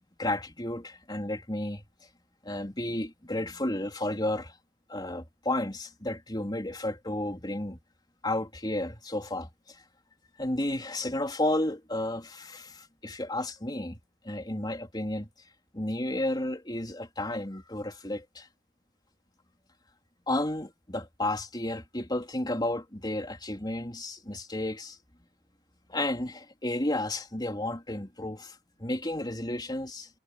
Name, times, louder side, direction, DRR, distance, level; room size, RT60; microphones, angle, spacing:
voice 1, 0.2-1.8 2.4-4.5 4.9-7.8 8.2-9.5 10.4-14.0 14.2-15.3 15.7-18.5 20.3-25.0 25.9-30.1, left 1 dB, 25° left, 3.7 m, -32 dB
head